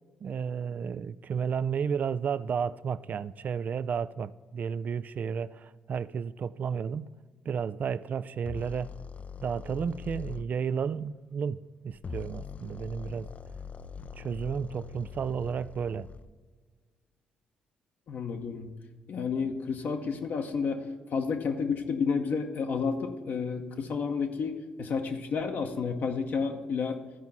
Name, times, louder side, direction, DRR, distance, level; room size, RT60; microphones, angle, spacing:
voice 1, 0.2-7.1 7.5-8.9 9.4-13.3 14.2-16.1, right 7 dB, 50° right, 0.3 m, -32 dB
sound 1, 8.4-10.5 11.9-16.3, left 6 dB, 40° left, 0.4 m, -42 dB
voice 2, 18.1-18.7 19.1-20.8 21.1-27.0, left 5 dB, 55° left, 0.8 m, -31 dB
12.5 x 4.7 x 5.6 m
hypercardioid pair, 45°, 4 cm